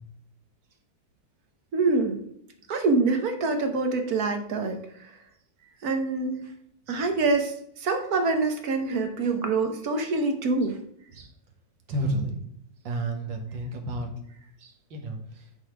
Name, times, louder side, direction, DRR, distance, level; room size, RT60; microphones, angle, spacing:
voice 1, 1.7-2.2 2.7-5.1 5.8-6.4 6.9-10.8 11.2-11.3 14.6-14.7, right 3 dB, 55° right, 6 dB, 1.5 m, -26 dB
voice 2, 11.9-12.4 12.8-14.1 14.9-15.2, right 1 dB, 80° right, 3 dB, 2.1 m, -30 dB
9.9 x 4.2 x 4.7 m, 0.71 s
omnidirectional pair, 2.0 m